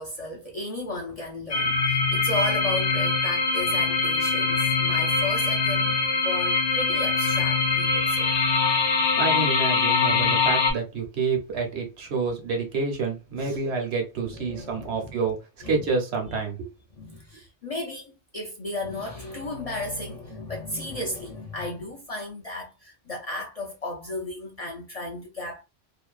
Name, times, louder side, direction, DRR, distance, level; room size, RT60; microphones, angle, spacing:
voice 1, 0.0-8.3 13.4-13.7 14.2-15.1 15.6-15.9 16.2-16.4 16.9-25.6, left 2 dB, 50° left, 0.5 m, -34 dB
sound 1, 1.5-10.7, left 4 dB, 65° left, 0.8 m, -23 dB
voice 2, 9.2-15.4 15.7-16.7, right 4 dB, 75° right, 1.1 m, -28 dB
2.7 x 2.2 x 2.4 m
omnidirectional pair, 1.1 m